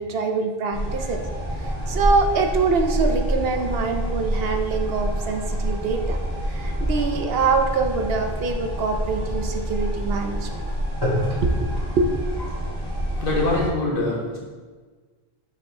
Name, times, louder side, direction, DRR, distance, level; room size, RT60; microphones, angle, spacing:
voice 1, 0.0-6.2 6.5-10.5 11.4-11.7 11.9-12.1, right 4 dB, 70° right, 5 dB, 0.8 m, -24 dB
sound 1, 0.7-13.7, equal, 20° left, 1.7 m, -27 dB
voice 2, 13.2-14.4, left 2 dB, 60° left, -4 dB, 1.6 m, -23 dB
5.5 x 5.4 x 3.7 m, 1.4 s
omnidirectional pair, 1.1 m